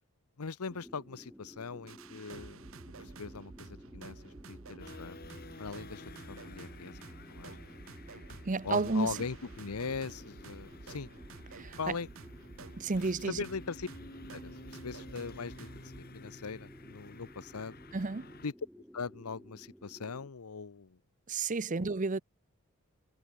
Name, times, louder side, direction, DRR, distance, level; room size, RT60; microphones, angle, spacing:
voice 1, 0.4-2.6 3.0-5.2 5.6-7.0 7.3-7.6 8.6-11.1 11.8-12.1 13.0-13.9 14.3-15.7 15.9-17.8 18.4-18.5 18.9-21.0 21.8-21.9, left 5 dB, 85° left, 0.8 m, -40 dB
sound 1, 0.7-20.3, equal, 5° right, 2.7 m, -55 dB
sound 2, 1.9-16.0, right 3 dB, 65° right, 1.1 m, -51 dB
sound 3, 4.8-18.5, left 2 dB, 45° left, 4.0 m, -52 dB
voice 2, 8.4-9.2 11.5-11.9 12.8-13.4 17.9-18.3 21.3-22.2, right 3 dB, 35° right, 0.6 m, -31 dB
head